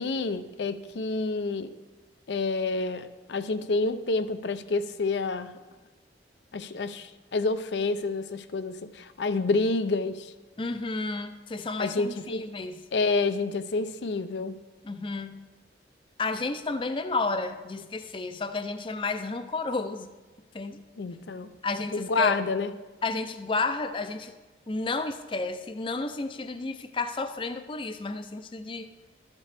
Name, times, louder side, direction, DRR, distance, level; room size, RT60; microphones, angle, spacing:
voice 1, 0.0-1.7 2.3-5.5 6.5-10.3 11.8-12.4 12.9-14.6 21.0-21.5 21.9-22.7, left 3 dB, 75° left, 12 dB, 0.5 m, -28 dB
voice 2, 10.6-12.8 14.8-15.4 16.2-20.1 20.5-20.8 21.6-22.4 23.0-24.3 24.7-28.9, left 3 dB, 30° left, 10 dB, 0.5 m, -31 dB
12.5 x 8.2 x 3.4 m, 1.2 s
head